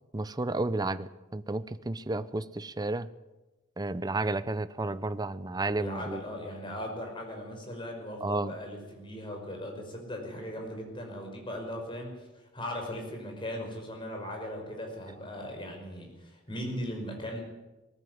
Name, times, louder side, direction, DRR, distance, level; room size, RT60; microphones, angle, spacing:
voice 1, 0.1-3.1 3.8-6.2 8.2-8.6, right 2 dB, 20° right, 13 dB, 0.6 m, -32 dB
voice 2, 5.8-17.4, equal, 25° left, 2 dB, 5.3 m, -38 dB
19.5 x 14.5 x 9.4 m, 1.1 s
head